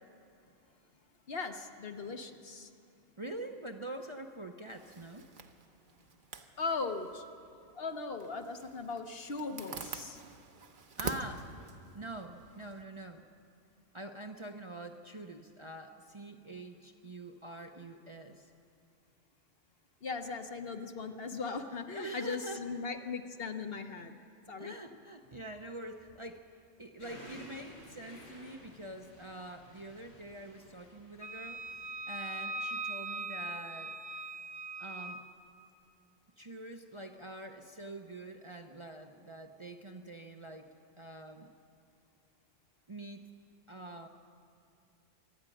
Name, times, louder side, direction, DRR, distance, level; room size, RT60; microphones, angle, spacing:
voice 1, 1.3-2.7 6.6-7.2 7.7-10.2 20.0-24.2 24.5-24.7, left 4 dB, 55° left, 6 dB, 1.2 m, -38 dB
voice 2, 3.2-5.3 11.0-11.5 11.9-13.2 13.9-18.5 21.9-22.6 24.6-31.6 32.1-34.0 34.8-35.2 36.4-40.7 41.0-41.5 42.9-43.3 43.7-44.1, right 1 dB, 30° right, 4 dB, 0.8 m, -45 dB
Zipper (clothing), 4.7-12.8, right 5 dB, 45° right, 1.1 m, -46 dB
sound 1, 27.0-32.0, equal, 80° left, 7.4 m, -54 dB
Wind instrument woodwind instrument, 31.2-35.2, right 3 dB, 80° right, 1.4 m, -40 dB
26.5 x 10.5 x 10.0 m, 2.6 s
omnidirectional pair, 1.2 m